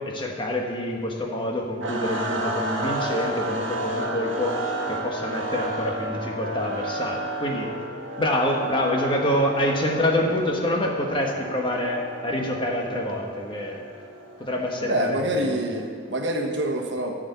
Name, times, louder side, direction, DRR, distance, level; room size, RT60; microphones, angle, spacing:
voice 1, 0.0-7.7 8.2-13.8 14.4-15.5, left 1 dB, 25° left, 0 dB, 1.3 m, -26 dB
sound 1, 1.8-15.9, right 1 dB, 85° right, 1.4 m, -32 dB
voice 2, 14.8-17.1, right 1 dB, 70° right, 2 dB, 1.2 m, -26 dB
13.0 x 5.1 x 8.1 m, 2.1 s
head